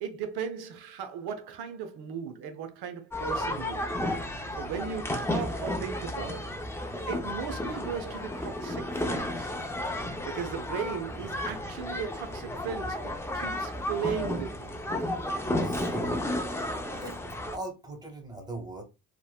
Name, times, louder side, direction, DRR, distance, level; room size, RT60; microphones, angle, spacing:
voice 1, 0.0-4.0 4.5-6.6 7.1-9.5 10.2-14.8, right 7 dB, 65° right, 0.7 m, -37 dB
sound 1, 3.1-17.6, left 1 dB, 5° left, 0.6 m, -33 dB
voice 2, 15.6-16.2 17.0-17.2 17.5-18.8, right 2 dB, 10° right, 1.2 m, -39 dB
3.1 x 2.1 x 2.3 m
supercardioid pair, 50°, 41 cm